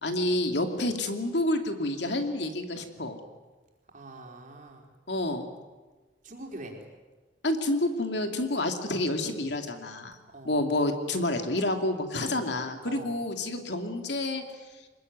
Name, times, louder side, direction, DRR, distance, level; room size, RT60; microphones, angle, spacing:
voice 1, 0.0-3.2 5.1-5.5 7.4-10.2 10.4-14.4, left 1 dB, 70° left, 5 dB, 2.6 m, -29 dB
voice 2, 3.9-4.9 6.2-6.8 10.3-10.6 12.9-13.2, right 1 dB, 45° right, 1 dB, 4.6 m, -43 dB
25.0 x 21.0 x 9.5 m, 1.3 s
head